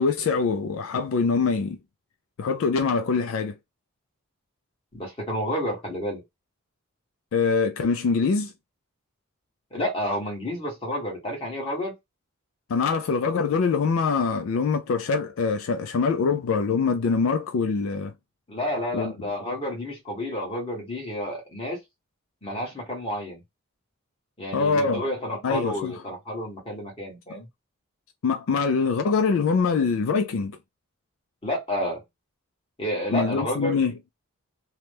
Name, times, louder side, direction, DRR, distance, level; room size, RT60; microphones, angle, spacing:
voice 1, 0.0-1.8 2.4-3.6 7.3-8.5 12.7-18.1 18.9-19.1 24.5-25.0 25.4-25.9 28.2-30.6 33.1-33.9, left 5 dB, 70° left, 0.4 m, -24 dB
voice 2, 4.9-6.2 9.7-11.9 18.5-21.8 22.4-23.4 24.4-27.5 31.4-32.0 32.8-33.8, equal, 25° left, 1.3 m, -30 dB
2.9 x 2.1 x 3.3 m
head